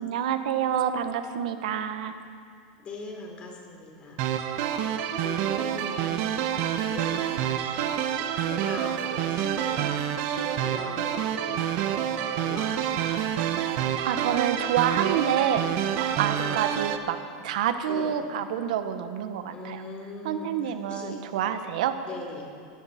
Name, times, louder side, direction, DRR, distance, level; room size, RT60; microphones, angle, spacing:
voice 1, 0.0-2.1 13.8-15.9 16.2-17.2 17.4-19.8 20.2-22.0, right 9 dB, 80° right, 9 dB, 1.3 m, -28 dB
voice 2, 2.8-4.2 4.7-7.2 7.7-9.9 10.3-13.3 16.3-16.7 17.9-18.1 19.5-20.5 20.8-21.2 22.1-22.5, left 3 dB, 30° left, 1 dB, 3.6 m, -40 dB
sound 1, 4.2-17.0, right 10 dB, 55° right, 1.0 m, -28 dB
20.5 x 15.5 x 4.4 m, 2.2 s
supercardioid pair, 140°, 4 cm